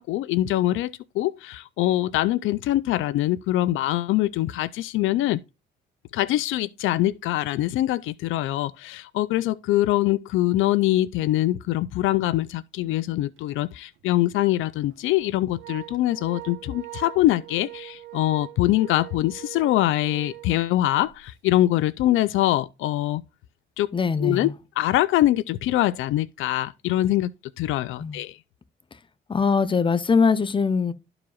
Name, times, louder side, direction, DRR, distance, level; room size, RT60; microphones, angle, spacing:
voice 1, 0.0-5.4 6.1-23.2 23.8-23.9 24.2-27.3 27.6-28.4, left 15 dB, 85° left, 0.4 m, -23 dB
Organ, 13.4-13.6 14.0-14.1 14.9-21.2, right 16 dB, 80° right, 1.1 m, -42 dB
voice 2, 23.9-24.5 28.0-28.2 29.3-30.9, left 5 dB, 25° left, 0.7 m, -22 dB
13.0 x 4.8 x 2.3 m
cardioid pair, 90°, 20 cm